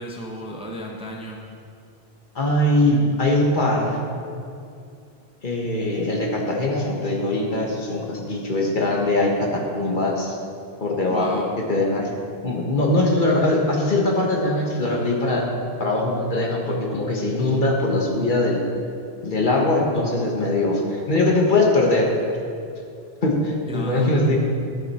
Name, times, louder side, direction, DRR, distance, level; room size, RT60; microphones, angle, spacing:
voice 1, 0.0-1.4 11.1-11.5 23.7-24.4, equal, 5° right, -1 dB, 0.8 m, -34 dB
voice 2, 2.3-4.0 5.4-10.4 10.8-11.4 11.7-12.1 12.4-15.5 15.8-18.6 19.2-22.1 23.2-24.4, left 2 dB, 50° left, -1 dB, 1.4 m, -21 dB
12.0 x 7.1 x 4.2 m, 2.4 s
omnidirectional pair, 1.1 m